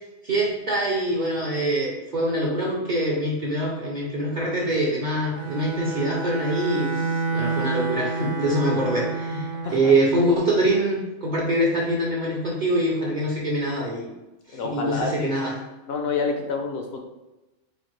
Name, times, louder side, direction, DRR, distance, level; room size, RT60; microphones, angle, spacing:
voice 1, 0.2-14.1 14.5-15.5, right 1 dB, 50° right, -3 dB, 0.5 m, -24 dB
Bowed string instrument, 5.3-9.8, right 4 dB, 70° right, 1.0 m, -28 dB
voice 2, 14.5-15.3 15.9-17.0, left 4 dB, 65° left, 3 dB, 0.7 m, -28 dB
4.2 x 2.5 x 3.0 m, 1.0 s
omnidirectional pair, 1.3 m